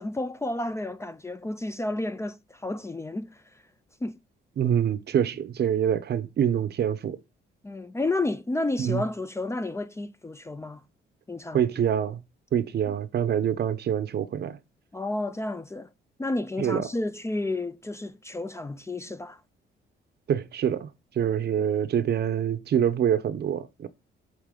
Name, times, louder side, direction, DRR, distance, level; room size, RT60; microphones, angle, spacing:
voice 1, 0.0-3.4 4.0-4.2 7.6-10.8 11.3-11.6 14.9-15.9 16.2-19.4, left 2 dB, 15° left, 0.4 m, -31 dB
voice 2, 4.6-7.2 8.8-9.0 11.5-12.2 12.5-14.6 16.6-16.9 20.3-20.9 21.2-23.9, right 9 dB, 55° right, 0.7 m, -25 dB
8.2 x 3.3 x 3.7 m
cardioid pair, 90°, 20 cm